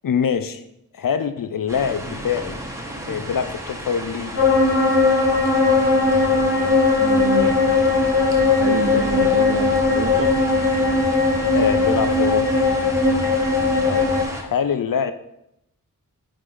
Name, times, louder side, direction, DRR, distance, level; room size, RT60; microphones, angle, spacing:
voice 1, 0.0-0.6 0.9-2.6 3.0-4.4 9.1-9.4 11.5-12.5 13.8-15.1, left 7 dB, 70° left, 11 dB, 0.5 m, -24 dB
sound 1, 1.7-14.4, right 1 dB, 10° right, 1.2 m, -33 dB
sound 2, 4.4-14.2, left 3 dB, 40° left, 2.6 m, -18 dB
voice 2, 7.0-7.6 8.6-10.4, right 2 dB, 40° right, 5 dB, 0.9 m, -28 dB
9.7 x 3.8 x 3.3 m, 0.81 s
wide cardioid pair, 50°, 36 cm